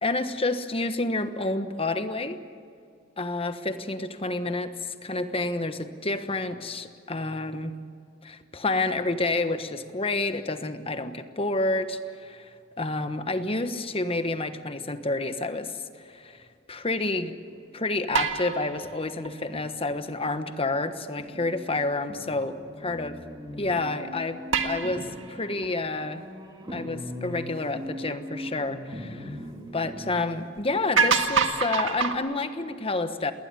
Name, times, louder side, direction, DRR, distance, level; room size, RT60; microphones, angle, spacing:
voice 1, 0.0-2.4 3.2-7.8 8.2-12.5 12.8-17.3 17.7-23.2 23.6-24.4 24.6-26.2 26.7-29.4 29.7-33.3, left 2 dB, 30° left, 9 dB, 1.2 m, -29 dB
sound 1, 17.2-20.3 20.6-30.2, equal, 25° right, 2.6 m, -41 dB
sound 2, 18.1-19.6 24.5-25.7 26.7-26.8 30.6-30.7 31.0-32.2, right 5 dB, 85° right, 1.6 m, -26 dB
20.0 x 19.5 x 9.7 m, 2.3 s
head